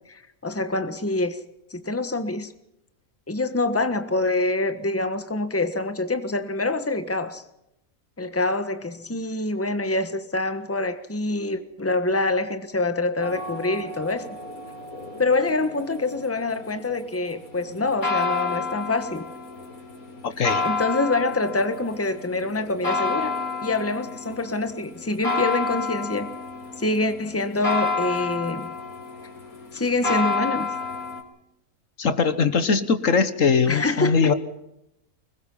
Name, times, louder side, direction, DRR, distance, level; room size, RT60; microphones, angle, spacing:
voice 1, 0.1-1.4 1.7-2.5 3.3-7.4 8.2-14.3 15.2-19.2 20.6-23.3 23.6-26.3 26.8-28.7 29.7-30.7 33.7-34.3, left 2 dB, 10° left, 8 dB, 1.4 m, -25 dB
sound 1, 13.2-31.2, left 3 dB, 80° left, 4.0 m, -30 dB
voice 2, 20.2-20.6 32.0-34.3, left 5 dB, 65° left, 11 dB, 1.6 m, -21 dB
24.5 x 21.0 x 5.6 m, 0.86 s
omnidirectional pair, 1.5 m